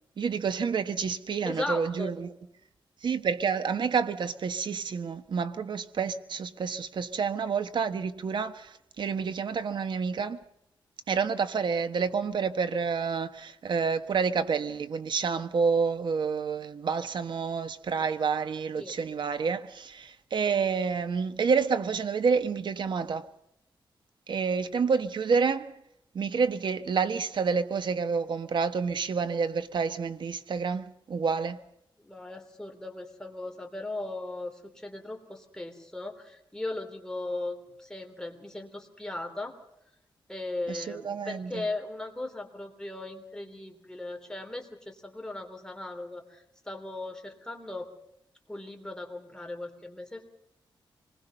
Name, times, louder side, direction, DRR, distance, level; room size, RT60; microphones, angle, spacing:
voice 1, 0.2-2.3 3.0-10.4 11.1-23.3 24.3-25.7 26.1-31.6 40.7-41.6, right 5 dB, 60° right, 1.4 m, -29 dB
voice 2, 1.4-2.1 18.8-18.9 32.0-39.5 40.3-47.9 48.5-50.2, left 2 dB, 5° left, 3.5 m, -38 dB
26.5 x 20.5 x 5.6 m
wide cardioid pair, 120°, 9 cm